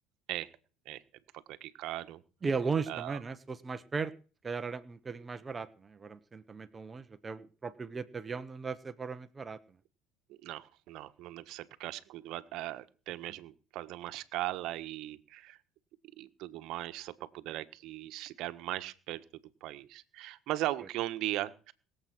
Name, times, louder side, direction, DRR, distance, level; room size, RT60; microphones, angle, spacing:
voice 1, 1.3-2.2 2.9-3.2 10.3-15.6 16.2-19.2 19.6-21.7, right 15 dB, 70° right, 11 dB, 1.4 m, -38 dB
voice 2, 2.4-4.1 4.4-9.6, right 4 dB, 25° right, 12 dB, 1.2 m, -37 dB
21.0 x 7.9 x 6.1 m, 0.37 s
supercardioid pair, 90°, 0 cm